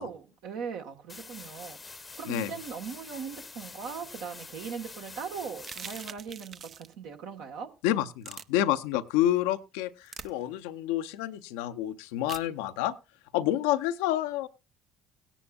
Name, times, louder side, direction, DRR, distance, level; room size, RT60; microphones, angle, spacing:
voice 1, 0.0-7.7, right 6 dB, 70° right, 1.4 m, -39 dB
sound 1, 1.1-6.1, left 4 dB, 25° left, 0.8 m, -46 dB
sound 2, 5.6-6.9 8.2-8.4 10.1-10.3 12.3-12.5, right 7 dB, 50° right, 0.6 m, -42 dB
voice 2, 7.8-13.0 13.3-14.5, left 13 dB, 75° left, 0.6 m, -29 dB
18.0 x 10.0 x 2.4 m
hypercardioid pair, 55°, 0 cm